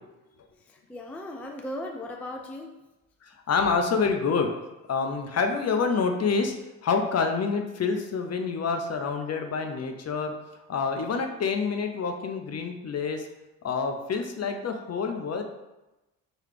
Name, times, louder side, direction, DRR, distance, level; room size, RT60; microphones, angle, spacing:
voice 1, 0.7-2.8, left 1 dB, 5° left, 2 dB, 0.4 m, -37 dB
voice 2, 3.2-4.5 4.9-6.6 6.8-10.3 10.7-13.3 13.6-15.4, left 5 dB, 40° left, 4 dB, 0.6 m, -27 dB
4.9 x 2.3 x 3.3 m, 1.0 s
hypercardioid pair, 55°, 41 cm